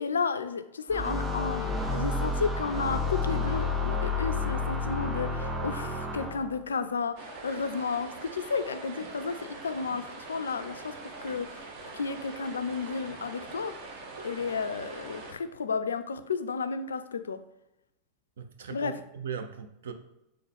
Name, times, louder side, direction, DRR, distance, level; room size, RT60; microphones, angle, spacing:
voice 1, 0.0-13.7 14.2-17.4 18.7-18.9, left 5 dB, 70° left, 10 dB, 0.3 m, -32 dB
sound 1, 0.9-6.6, left 3 dB, 5° right, 0.5 m, -30 dB
sound 2, 7.2-15.3, right 3 dB, 45° right, 0.8 m, -43 dB
voice 2, 18.4-19.9, right 6 dB, 60° right, 8 dB, 0.4 m, -38 dB
3.6 x 2.9 x 3.5 m, 0.88 s
figure-of-eight pair, 90°, 0 cm